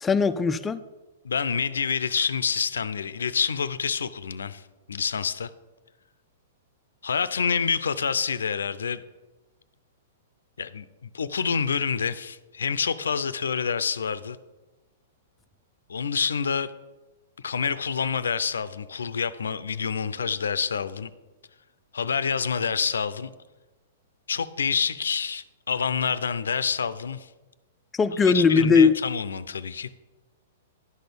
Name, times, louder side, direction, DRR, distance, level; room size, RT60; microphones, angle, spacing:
voice 1, 0.0-0.8 27.9-29.0, left 5 dB, 15° left, 13 dB, 0.5 m, -19 dB
voice 2, 1.2-4.6 4.9-5.5 7.0-9.0 10.6-14.4 15.9-16.7 17.4-21.1 21.9-23.3 24.3-27.3 28.2-29.9, left 6 dB, 85° left, 15 dB, 0.5 m, -27 dB
11.0 x 4.2 x 6.9 m, 1.2 s
hypercardioid pair, 125°, 0 cm